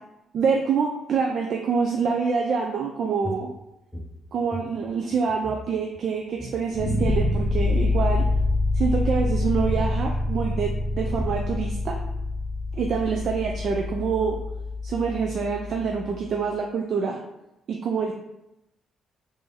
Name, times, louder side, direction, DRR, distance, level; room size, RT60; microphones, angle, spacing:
voice 1, 0.3-3.5 4.3-8.2 8.7-12.0 12.7-14.4 14.8-17.2 17.7-18.1, right 5 dB, 60° right, 1 dB, 0.3 m, -26 dB
sound 1, 3.2-5.7 5.9-6.0 6.3-6.6 7.2-7.7 8.0-8.6 9.5-9.9 10.7-10.8 11.0-11.7, equal, 15° left, 0.6 m, -36 dB
sound 2, 6.7-15.8, left 2 dB, 50° left, 0.6 m, -26 dB
3.5 x 2.6 x 3.3 m, 0.89 s
cardioid pair, 90°, 0 cm